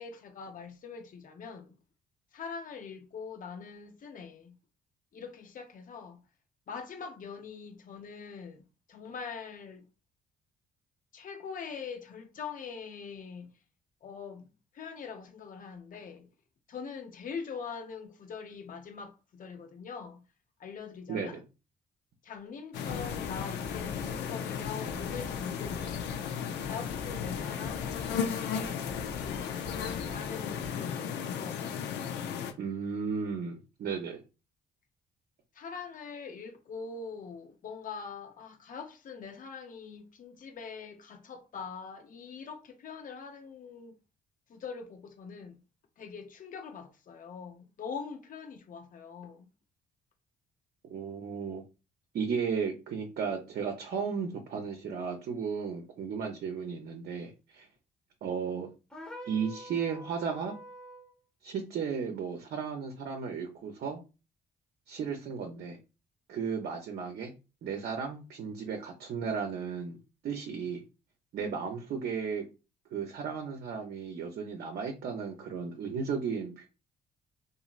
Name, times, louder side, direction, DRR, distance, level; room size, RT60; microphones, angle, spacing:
voice 1, 0.0-1.8 2.3-4.6 5.1-6.3 6.7-9.8 11.1-13.6 14.0-16.3 16.7-20.2 20.6-21.4 22.2-26.1 26.6-29.7 30.1-31.7 35.5-44.0 44.5-45.6 46.0-49.5, left 5 dB, 50° left, 0.7 m, -43 dB
voice 2, 21.1-21.4 32.6-34.2 50.9-51.6 52.1-57.7 58.2-58.7 59.2-60.5 61.4-64.0 64.9-65.8 66.3-67.3 67.6-70.0 70.2-70.8 71.3-72.4 72.9-76.7, right 6 dB, 65° right, 0.7 m, -34 dB
sound 1, 22.7-32.5, left 7 dB, 90° left, 0.5 m, -35 dB
sound 2, 22.9-30.8, left 2 dB, 35° left, 1.0 m, -46 dB
sound 3, 58.9-61.1, left 1 dB, 5° left, 0.9 m, -46 dB
2.9 x 2.6 x 2.4 m
cardioid pair, 85°, 17 cm